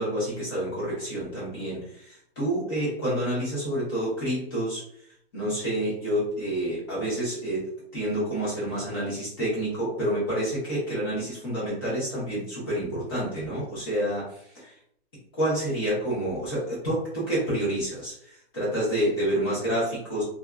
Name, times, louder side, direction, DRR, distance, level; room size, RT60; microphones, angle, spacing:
voice 1, 0.0-4.8 5.3-7.7 7.9-14.7 15.3-20.2, right 1 dB, 20° left, -8 dB, 1.1 m, -28 dB
2.6 x 2.4 x 2.3 m, 0.68 s
hypercardioid pair, 175°, 32 cm